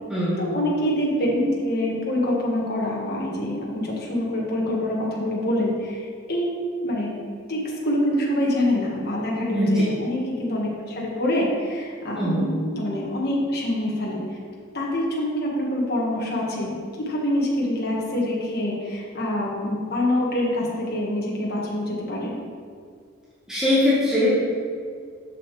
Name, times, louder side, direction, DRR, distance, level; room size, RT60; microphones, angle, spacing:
voice 1, 0.4-6.5 6.8-7.1 7.5-14.4 14.7-16.7 17.1-22.4, left 1 dB, 50° left, -3 dB, 1.4 m, -25 dB
voice 2, 9.5-9.9 12.2-12.5 23.5-24.4, left 1 dB, 5° right, -10 dB, 1.2 m, -21 dB
6.8 x 6.6 x 3.2 m, 2.1 s
head